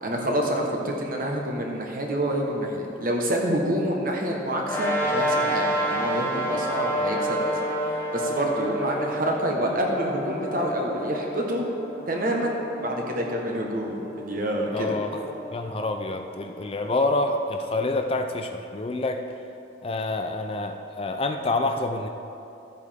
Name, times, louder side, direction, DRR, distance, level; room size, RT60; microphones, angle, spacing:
voice 1, 0.0-7.6 8.1-11.6 12.1-15.0, equal, 45° right, 0 dB, 1.3 m, -27 dB
sound 1, 4.6-17.4, right 1 dB, 10° left, 1.1 m, -30 dB
voice 2, 14.7-15.2 15.5-19.2 19.8-22.1, left 2 dB, 30° left, 5 dB, 0.4 m, -27 dB
14.0 x 8.2 x 3.6 m, 2.8 s
head